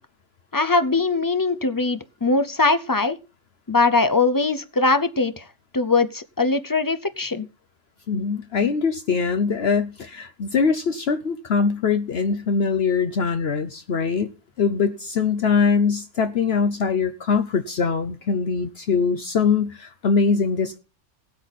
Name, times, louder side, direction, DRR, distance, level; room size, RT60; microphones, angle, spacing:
voice 1, 0.5-3.2 3.7-5.4 5.7-7.5, left 3 dB, 25° left, 0.5 m, -21 dB
voice 2, 8.1-20.8, left 5 dB, 60° left, 1.0 m, -22 dB
17.5 x 8.2 x 4.1 m
omnidirectional pair, 1.3 m